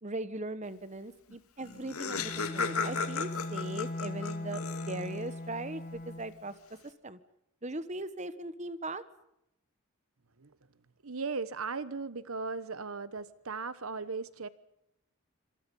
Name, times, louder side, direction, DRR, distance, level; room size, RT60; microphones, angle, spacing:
voice 1, 0.0-6.5 7.0-7.2 7.6-9.0, right 2 dB, 30° right, 1.3 m, -39 dB
Laughter, 1.3-1.4 1.6-5.3, left 5 dB, 80° left, 2.5 m, -35 dB
Bowed string instrument, 2.1-6.4, left 1 dB, 35° left, 0.9 m, -39 dB
voice 2, 11.0-14.5, right 4 dB, 75° right, 1.1 m, -37 dB
28.0 x 26.0 x 5.5 m
head